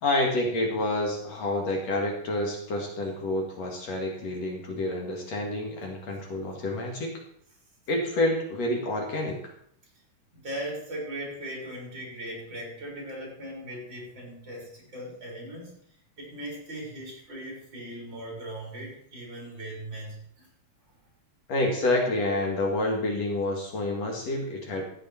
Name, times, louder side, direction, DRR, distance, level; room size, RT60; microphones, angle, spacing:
voice 1, 0.0-7.2 7.9-9.5 21.5-24.9, left 1 dB, 60° left, 0 dB, 3.1 m, -28 dB
voice 2, 10.3-15.7 16.2-20.2, right 1 dB, 35° right, -2 dB, 4.5 m, -38 dB
13.0 x 9.0 x 4.4 m, 0.66 s
omnidirectional pair, 3.4 m